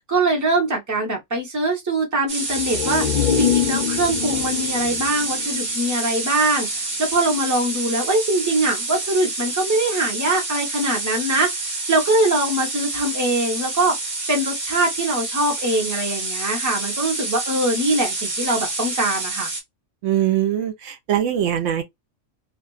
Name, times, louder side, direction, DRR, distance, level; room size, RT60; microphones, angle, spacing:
voice 1, 0.0-3.0 3.4-6.7 7.0-14.0 14.3-19.5, right 2 dB, 15° right, 0.9 m, -22 dB
sound 1, 2.3-19.6, right 2 dB, 55° right, 1.2 m, -28 dB
sound 2, 2.5-6.3 6.6-6.7, left 9 dB, 65° left, 0.4 m, -25 dB
voice 2, 20.0-21.8, right 11 dB, 80° right, 0.9 m, -22 dB
2.4 x 2.2 x 2.3 m
omnidirectional pair, 1.3 m